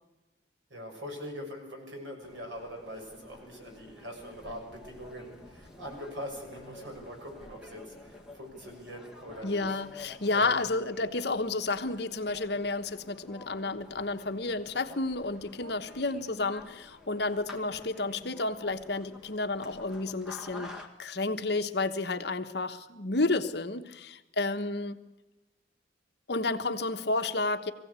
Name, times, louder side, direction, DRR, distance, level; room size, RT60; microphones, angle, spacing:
voice 1, 0.7-9.8 10.3-10.7, equal, 75° right, 2 dB, 6.3 m, -42 dB
sound 1, 2.2-20.9, left 2 dB, 5° right, 1.9 m, -50 dB
voice 2, 9.4-20.7 21.0-25.0 26.3-27.7, left 3 dB, 60° left, 8 dB, 1.1 m, -31 dB
21.5 x 16.0 x 8.2 m, 1.0 s
head